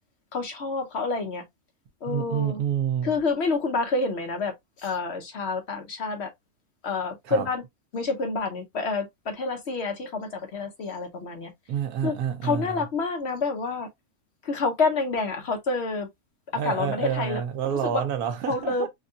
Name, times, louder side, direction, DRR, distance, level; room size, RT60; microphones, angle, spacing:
voice 1, 0.3-1.4 2.0-2.6 3.0-6.3 6.8-7.6 7.9-11.5 12.0-12.2 12.4-13.9 14.4-16.1 16.5-18.0 18.5-18.9, left 3 dB, 55° left, 0.9 m, -28 dB
voice 2, 2.1-3.1 7.3-7.5 11.7-12.9 16.5-18.9, right 9 dB, 90° right, 1.3 m, -28 dB
3.6 x 2.2 x 2.5 m
omnidirectional pair, 1.5 m